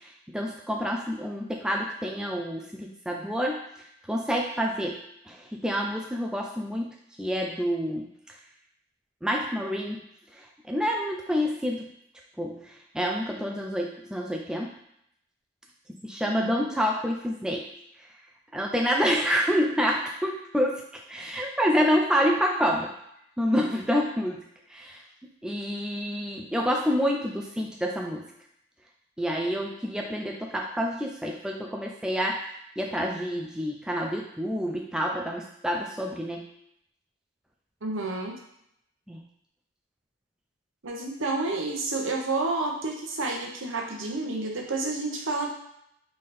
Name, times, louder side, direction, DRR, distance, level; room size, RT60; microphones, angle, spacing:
voice 1, 0.3-3.6 4.1-5.0 5.3-6.9 7.2-8.1 9.2-10.0 10.7-11.8 12.4-14.7 16.0-17.7 18.5-22.9 23.4-25.0 25.4-28.3 29.2-32.5 32.8-36.5 39.1-39.2, equal, 5° right, 0 dB, 0.3 m, -28 dB
voice 2, 16.3-16.7 37.8-38.4 40.8-45.5, right 3 dB, 75° right, 1 dB, 0.9 m, -30 dB
3.7 x 3.3 x 4.2 m, 0.76 s
head